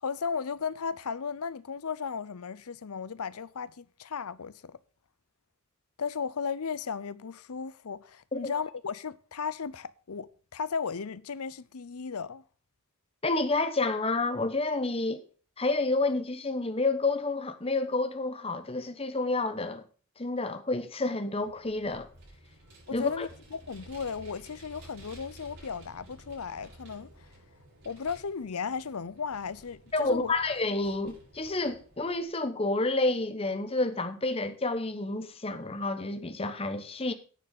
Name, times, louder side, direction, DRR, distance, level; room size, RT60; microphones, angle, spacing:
voice 1, 0.0-4.8 6.0-12.4 22.9-27.3 27.8-30.3, left 6 dB, 85° left, 0.7 m, -35 dB
voice 2, 13.2-15.2 15.6-19.8 20.2-22.1 22.9-23.3 29.9-37.1, left 2 dB, 25° left, 1.1 m, -29 dB
Vehicle, 21.4-32.3, right 1 dB, 55° right, 6.5 m, -53 dB
10.5 x 6.8 x 6.6 m
head